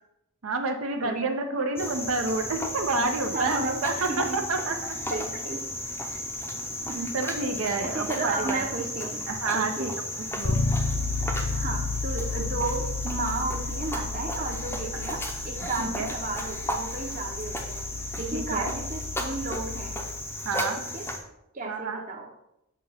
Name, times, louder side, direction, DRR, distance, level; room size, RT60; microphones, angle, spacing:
voice 1, 0.4-5.0 7.1-8.6 9.3-9.9 10.4-10.6 15.8-16.1 18.3-18.7 20.4-20.8 21.7-22.0, right 3 dB, 75° right, 4 dB, 0.7 m, -29 dB
Cricket, 1.8-21.2, left 1 dB, 10° left, 0.6 m, -34 dB
voice 2, 3.3-4.5 5.1-5.6 6.0-6.3 6.9-7.1 7.8-9.2 9.5-10.0 11.5-17.9 18.2-20.0 20.8-21.1 21.5-22.3, right 3 dB, 35° right, 2 dB, 0.8 m, -34 dB
Bass guitar, 10.4-20.3, left 3 dB, 55° left, 0.6 m, -32 dB
7.2 x 2.9 x 5.6 m, 0.85 s
head